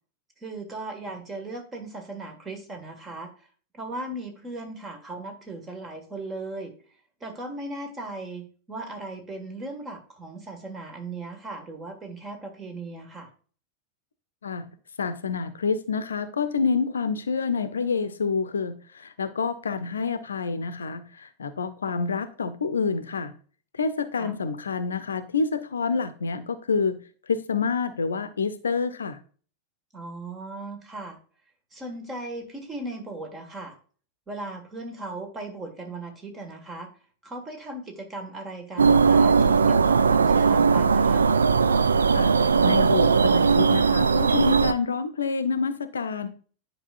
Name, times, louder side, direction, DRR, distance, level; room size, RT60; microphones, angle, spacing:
voice 1, 0.4-3.5 3.7-6.7 7.2-13.3 24.2-24.3 29.9-31.2 31.7-33.7 34.3-36.9 37.2-41.3, right 2 dB, 20° right, 1.8 m, -37 dB
voice 2, 15.0-23.3 23.7-27.0 27.3-29.2 42.1-42.3 42.6-46.3, left 5 dB, 70° left, 0.7 m, -27 dB
sound 1, 38.8-44.7, right 5 dB, 70° right, 0.4 m, -19 dB
9.8 x 4.9 x 2.5 m
figure-of-eight pair, 90°, 0 cm